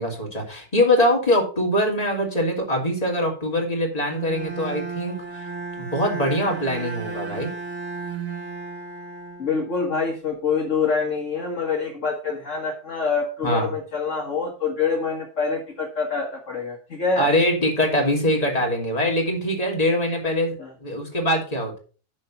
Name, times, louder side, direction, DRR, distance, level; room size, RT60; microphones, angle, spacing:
voice 1, 0.0-5.5 5.8-7.5 13.4-13.7 17.2-20.6 20.8-21.8, left 1 dB, 25° left, -1 dB, 2.9 m, -23 dB
Bowed string instrument, 4.1-10.0, right 4 dB, 75° right, 3.4 m, -34 dB
voice 2, 9.4-17.3 20.6-20.7, left 5 dB, 55° left, 0 dB, 1.8 m, -26 dB
12.0 x 4.3 x 5.7 m, 0.38 s
omnidirectional pair, 1.6 m